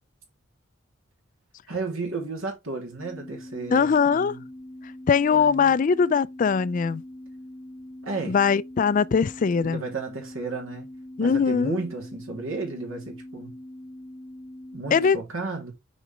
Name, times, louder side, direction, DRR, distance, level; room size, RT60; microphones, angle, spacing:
voice 1, 1.7-4.4 5.3-5.7 8.0-8.4 9.7-10.9 11.2-13.6 14.7-15.7, right 3 dB, 75° right, 2.8 m, -33 dB
sound 1, 3.0-15.1, left 1 dB, ahead, 3.9 m, -43 dB
voice 2, 3.7-4.4 5.1-7.0 8.3-9.8 11.2-11.8 14.9-15.2, left 6 dB, 40° left, 0.3 m, -21 dB
6.4 x 5.0 x 3.1 m
head